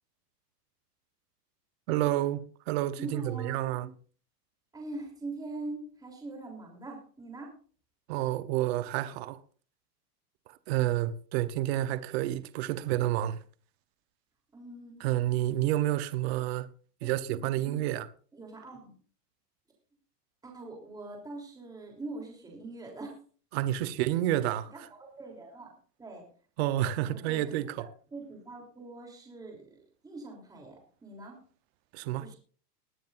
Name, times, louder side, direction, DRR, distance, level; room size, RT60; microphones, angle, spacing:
voice 1, 1.9-3.9 8.1-9.4 10.7-13.4 15.0-16.7 17.0-18.1 23.5-24.7 26.6-27.9 31.9-32.3, right 14 dB, 40° right, 0.9 m, -29 dB
voice 2, 3.0-3.7 4.7-7.5 14.5-15.0 17.0-17.8 18.3-18.9 20.4-23.1 24.7-25.7 26.0-26.2 26.9-27.7 28.1-31.4 32.2-32.4, right 2 dB, 10° right, 3.3 m, -43 dB
20.5 x 11.5 x 2.6 m
supercardioid pair, 155°, 49 cm